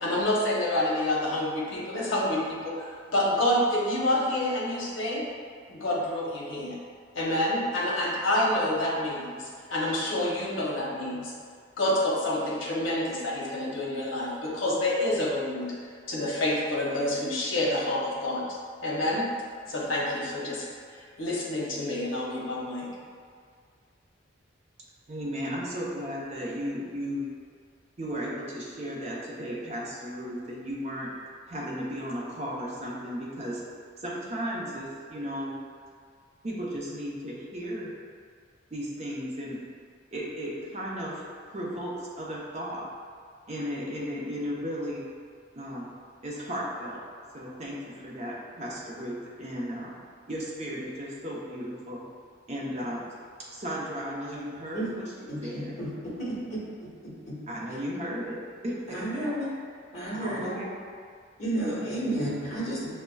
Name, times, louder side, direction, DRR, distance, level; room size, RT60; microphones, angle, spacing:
voice 1, 0.0-5.3 5.7-6.8 7.1-11.3 11.8-15.7 16.1-18.4 18.8-19.3 19.7-20.6 20.9-22.9, left 1 dB, 80° left, -4 dB, 0.8 m, -28 dB
voice 2, 25.1-27.3 28.0-31.1 31.5-33.6 34.0-35.6 36.4-37.9 38.7-39.6 40.1-42.8 43.5-45.0 45.6-45.9 46.2-47.0 47.3-50.0 50.3-52.0 52.5-53.0 53.4-55.1 55.4-55.8 57.5-58.4 58.6-59.1 60.1-60.7, equal, 35° right, -5 dB, 0.6 m, -35 dB
voice 3, 55.3-55.9 56.2-56.3 57.3-57.4 58.9-59.5 59.9-60.6 61.4-62.9, right 1 dB, 35° left, -9 dB, 1.3 m, -31 dB
6.2 x 2.1 x 2.3 m, 2.1 s
head